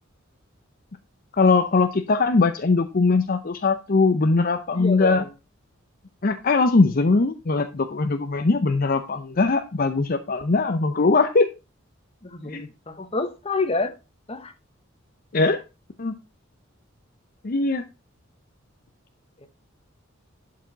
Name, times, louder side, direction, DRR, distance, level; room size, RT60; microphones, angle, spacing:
voice 1, 1.3-5.2 6.2-11.5 12.5-12.6 15.3-15.6 16.0-16.1 17.4-17.8, left 3 dB, 45° left, 0.6 m, -21 dB
voice 2, 4.8-5.3 12.2-14.0 14.3-14.5 19.4-19.5, left 3 dB, 30° left, 1.2 m, -28 dB
11.5 x 4.7 x 4.0 m
head